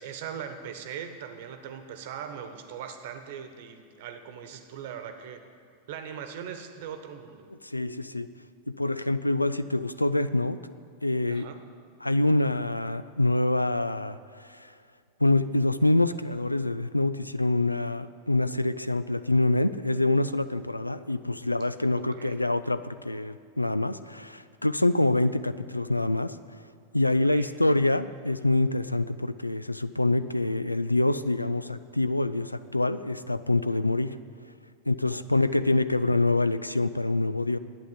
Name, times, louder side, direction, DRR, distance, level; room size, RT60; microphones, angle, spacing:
voice 1, 0.0-5.4 5.9-7.5 11.3-11.6 21.9-22.4 27.3-27.5 35.1-35.2 35.5-35.7, right 8 dB, 50° right, 8 dB, 1.1 m, -40 dB
voice 2, 7.6-8.3 8.7-10.6 11.0-11.5 12.0-14.7 15.2-26.4 26.9-34.2 34.9-37.6, left 2 dB, 85° left, 14 dB, 0.4 m, -26 dB
11.5 x 8.9 x 8.1 m, 2.2 s
figure-of-eight pair, 90°, 0 cm